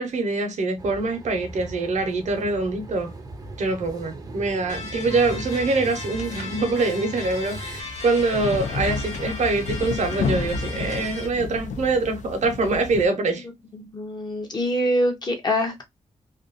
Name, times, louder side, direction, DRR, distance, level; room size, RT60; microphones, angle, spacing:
voice 1, 0.0-3.1 3.6-13.5, right 3 dB, 75° right, 0.8 m, -24 dB
sound 1, 0.8-7.8, right 2 dB, 30° right, 0.4 m, -39 dB
sound 2, 4.7-11.3, left 3 dB, 70° left, 0.9 m, -37 dB
sound 3, 7.2-13.1, left 4 dB, 90° left, 0.4 m, -31 dB
voice 2, 13.7-15.8, equal, 35° left, 0.5 m, -24 dB
2.5 x 2.2 x 2.4 m
wide cardioid pair, 175°, 12 cm